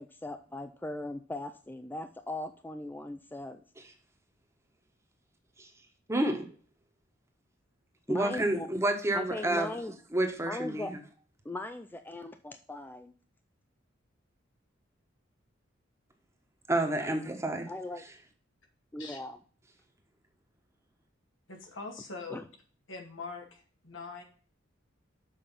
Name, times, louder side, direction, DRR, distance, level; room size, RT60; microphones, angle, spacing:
voice 1, 0.0-3.6 8.1-8.7 9.1-9.9 10.5-10.9 11.4-13.1 17.7-18.0 18.9-19.4 22.3-22.4, left 1 dB, 10° left, 8 dB, 0.4 m, -39 dB
voice 2, 6.1-6.6 8.1-9.8 10.1-11.0 16.7-17.7, right 1 dB, 15° right, 4 dB, 1.3 m, -29 dB
voice 3, 21.5-22.4 22.9-24.2, left 4 dB, 80° left, 2 dB, 2.3 m, -43 dB
7.1 x 5.1 x 5.6 m, 0.40 s
head